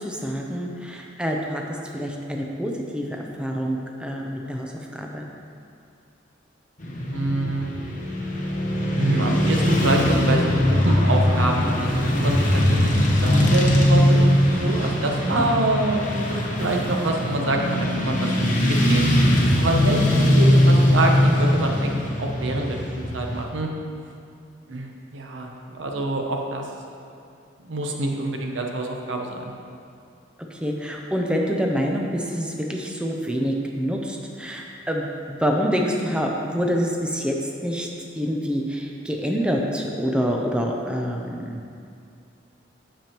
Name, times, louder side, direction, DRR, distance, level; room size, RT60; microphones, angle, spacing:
voice 1, 0.0-1.6 1.9-5.3 15.2-15.4 30.5-37.3 37.6-37.9 38.2-41.6, equal, 5° right, 0 dB, 0.5 m, -26 dB
Motorcycle / Traffic noise roadway noise, 6.8-23.4, left 1 dB, 45° left, 1.0 m, -20 dB
voice 2, 7.1-7.7 9.0-19.1 19.6-23.7 24.7-26.7 27.6-29.5, right 2 dB, 80° right, 1 dB, 0.8 m, -26 dB
8.9 x 6.8 x 2.9 m, 2.4 s
head